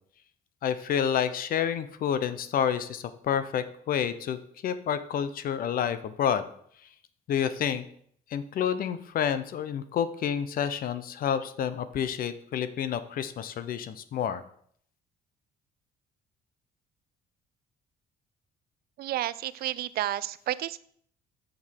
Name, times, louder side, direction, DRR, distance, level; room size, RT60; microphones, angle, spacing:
voice 1, 0.6-6.4 7.3-7.9 8.3-14.4, left 8 dB, 60° left, 13 dB, 0.9 m, -29 dB
voice 2, 19.0-20.8, right 13 dB, 65° right, 17 dB, 0.5 m, -31 dB
7.5 x 6.5 x 6.6 m, 0.62 s
cardioid pair, 110°, 17 cm